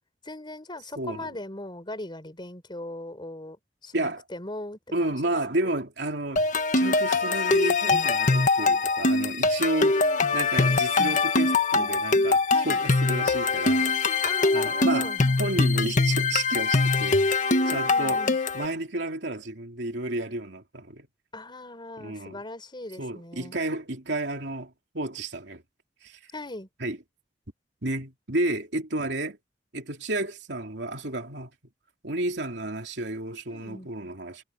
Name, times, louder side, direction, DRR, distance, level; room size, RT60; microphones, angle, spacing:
voice 1, 0.2-3.6 3.8-5.8 9.8-10.3 12.5-12.8 14.2-15.2 17.6-18.4 21.3-23.6 26.3-26.7 33.5-33.9, left 2 dB, 25° left, 4.3 m, -39 dB
voice 2, 1.0-1.3 3.9-4.2 4.9-6.5 6.7-10.0 10.3-13.8 14.5-15.1 15.4-17.2 17.7-18.2 18.5-21.1 22.0-22.4 23.0-25.6 26.0-26.2 26.8-27.0 27.8-29.4 29.7-31.5 32.0-34.4, right 2 dB, 75° right, 3.1 m, -31 dB
sound 1, 6.4-18.7, left 3 dB, 45° left, 1.5 m, -23 dB
head